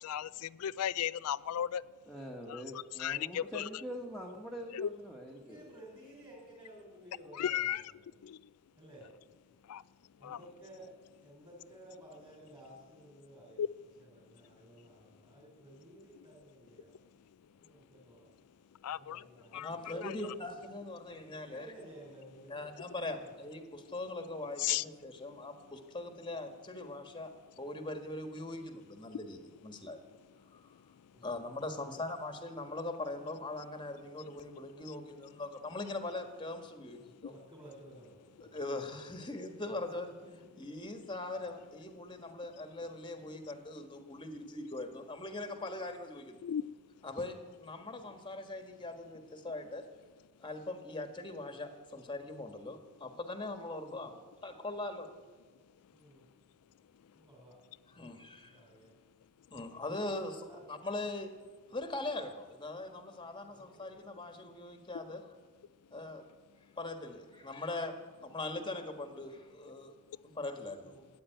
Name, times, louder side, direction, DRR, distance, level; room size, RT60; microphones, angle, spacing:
voice 1, 0.0-1.8 2.5-2.6 3.0-3.7 4.7-4.9 7.3-7.8 8.2-8.4 9.7-9.8 10.2-10.4 13.6-13.7 18.8-19.2 19.5-19.7 20.0-20.1 24.6-24.8 46.4-46.6, left 10 dB, 85° left, 18 dB, 0.4 m, -34 dB
voice 2, 2.1-5.7, equal, ahead, -2 dB, 1.5 m, -44 dB
voice 3, 5.4-8.1 8.8-9.1 10.2-13.6 14.0-17.0 17.5-18.3 18.9-19.8 21.5-22.7 23.2-23.3 31.1-31.5 31.8-32.0 37.0-38.6 40.2-40.4 47.9-48.0 53.9-54.1 55.9-56.2 57.1-57.6 57.9-58.1 58.4-58.9 60.1-60.8 63.5-64.0 70.8-71.1, right 1 dB, 20° right, -5 dB, 3.9 m, -55 dB
voice 4, 19.5-21.7 22.5-30.0 30.5-30.7 31.2-37.3 38.4-40.1 40.6-46.4 47.0-49.8 50.4-54.1 54.4-55.1 57.9-58.6 59.5-61.3 61.7-65.3 65.9-66.2 66.8-67.9 68.2-69.9 70.2-71.0, left 2 dB, 20° left, 7 dB, 1.5 m, -41 dB
14.0 x 9.5 x 9.2 m, 1.4 s
head